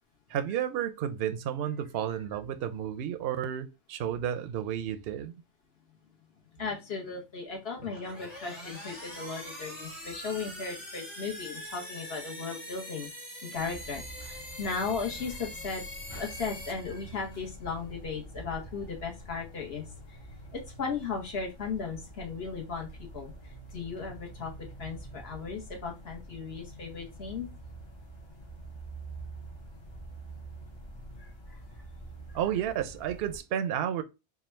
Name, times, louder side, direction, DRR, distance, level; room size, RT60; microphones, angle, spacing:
voice 1, 0.3-5.3 32.3-34.0, right 10 dB, 65° right, 0.7 m, -32 dB
voice 2, 6.6-13.1 13.4-15.8 16.1-20.2 20.5-23.3 23.7-24.5 24.8-27.5 31.2-31.6, left 5 dB, 60° left, 1.3 m, -36 dB
sound 1, 7.8-17.5, left 1 dB, 80° left, 1.8 m, -43 dB
sound 2, 13.5-33.4, right 2 dB, 30° left, 0.7 m, -46 dB
3.5 x 2.3 x 4.3 m
omnidirectional pair, 1.2 m